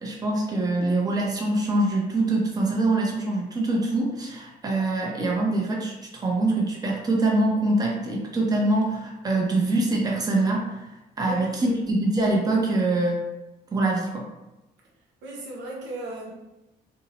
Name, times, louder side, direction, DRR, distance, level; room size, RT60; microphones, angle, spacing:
voice 1, 0.0-10.8 11.2-13.2 13.7-14.3, right 2 dB, 20° right, -2 dB, 0.6 m, -24 dB
voice 2, 11.2-11.9 15.2-16.3, right 2 dB, 90° right, -2 dB, 0.6 m, -35 dB
2.6 x 2.0 x 2.8 m, 0.98 s
cardioid pair, 105°, 18 cm